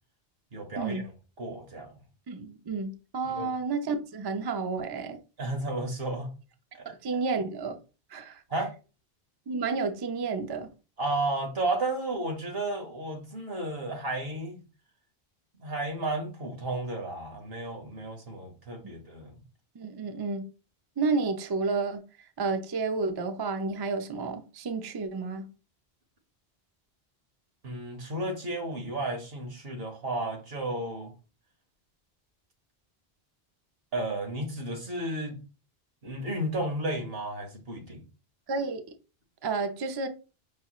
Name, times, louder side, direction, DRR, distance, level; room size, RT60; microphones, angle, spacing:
voice 1, 0.5-1.1 1.4-1.9 3.2-3.5 5.4-6.3 6.9-7.0 8.5-8.7 11.0-14.6 15.6-19.4 27.6-31.1 33.9-35.4 36.0-38.0, right 2 dB, 70° right, 1.4 m, -33 dB
voice 2, 2.3-5.2 7.0-7.8 8.1-8.4 9.5-10.7 18.8-18.9 19.8-20.5 21.0-22.0 22.4-25.4 38.5-38.8 39.4-40.1, right 4 dB, 40° right, 0.3 m, -31 dB
5.5 x 2.9 x 2.3 m
omnidirectional pair, 1.0 m